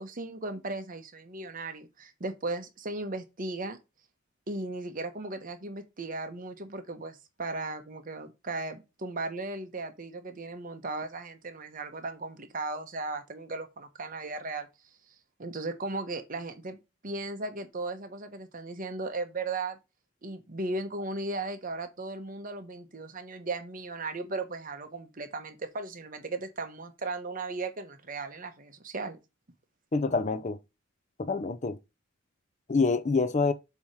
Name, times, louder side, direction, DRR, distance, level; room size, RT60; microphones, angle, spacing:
voice 1, 0.0-3.8 4.5-14.7 15.4-16.8 17.0-19.8 20.2-29.2, right 2 dB, 45° right, 1.0 m, -36 dB
voice 2, 29.9-30.6 31.2-31.8 32.7-33.5, left 4 dB, 35° left, 0.6 m, -26 dB
7.1 x 3.0 x 4.8 m
head